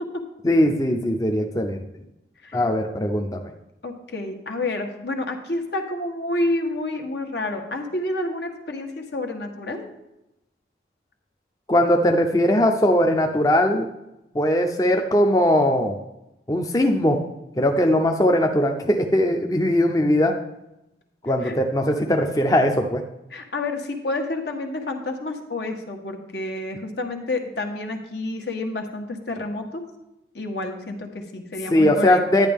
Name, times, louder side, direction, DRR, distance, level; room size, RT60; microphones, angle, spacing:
voice 1, 0.4-1.8 2.5-3.4 11.7-13.9 14.3-16.0 16.5-17.2 17.6-20.3 21.2-23.0 31.7-32.5, left 1 dB, 20° left, 3 dB, 0.5 m, -20 dB
voice 2, 3.8-9.9 21.4-21.5 23.3-29.8 30.3-32.2, left 2 dB, 75° left, 3 dB, 1.3 m, -29 dB
10.5 x 9.9 x 3.5 m, 0.90 s
head